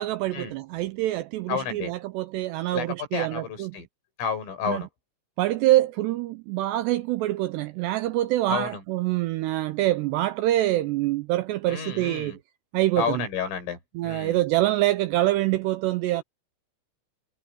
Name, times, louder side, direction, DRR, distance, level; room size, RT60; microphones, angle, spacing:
voice 1, 0.0-3.7 4.7-4.8 5.4-12.3 12.7-13.2 14.0-16.2, right 15 dB, 90° right, 2.5 m, -25 dB
voice 2, 1.5-1.9 2.7-2.9 3.1-3.9 4.2-4.9 8.5-8.8 11.7-12.4 13.0-13.8 14.0-14.4, left 6 dB, 85° left, 9.2 m, -30 dB
omnidirectional pair, 5.7 m